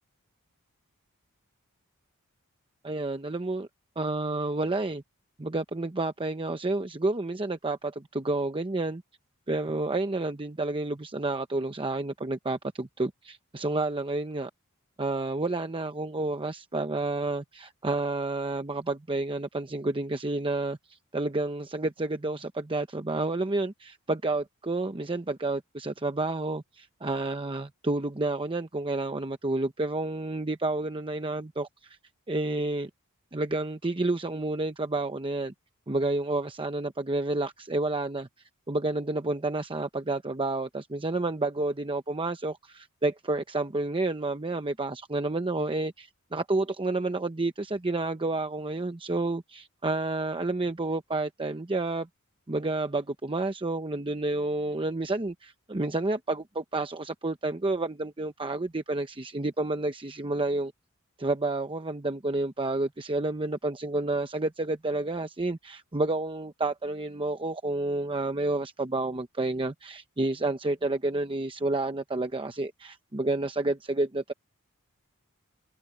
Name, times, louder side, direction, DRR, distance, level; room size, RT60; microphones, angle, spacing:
voice 1, 2.8-3.7 4.0-5.0 5.4-9.0 9.5-14.5 15.0-32.0 32.3-32.9 33.3-35.5 35.9-38.3 38.7-52.1 52.5-60.7 61.2-74.3, right 2 dB, 25° right, 0.8 m, -30 dB
head